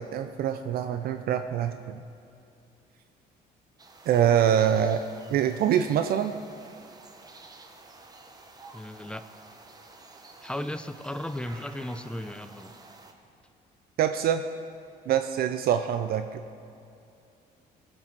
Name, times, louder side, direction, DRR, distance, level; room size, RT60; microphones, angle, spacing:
voice 1, 0.0-2.0 4.1-5.0 5.3-6.3 14.0-14.4 15.1-16.4, right 9 dB, 65° right, 8 dB, 0.5 m, -25 dB
sound 1, 3.8-13.1, right 3 dB, 20° right, 0.9 m, -50 dB
voice 2, 8.7-9.2 10.4-12.7, left 1 dB, 5° left, 11 dB, 0.4 m, -35 dB
17.5 x 6.2 x 4.6 m, 2.6 s
cardioid pair, 110°, 17 cm